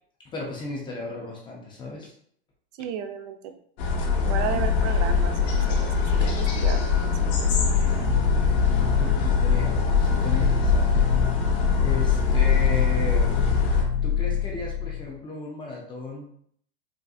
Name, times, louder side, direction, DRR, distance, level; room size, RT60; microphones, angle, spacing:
voice 1, 0.3-2.1 9.0-11.1 11.8-13.3 13.7-16.3, left 2 dB, 15° left, -2 dB, 0.4 m, -35 dB
voice 2, 2.8-3.5 4.2-7.5, right 8 dB, 45° right, 8 dB, 0.4 m, -34 dB
sound 1, 3.8-13.8, left 4 dB, 45° left, 0.7 m, -23 dB
sound 2, 7.3-15.1, left 9 dB, 85° left, 0.5 m, -25 dB
3.5 x 2.5 x 2.4 m, 0.63 s
supercardioid pair, 140°, 31 cm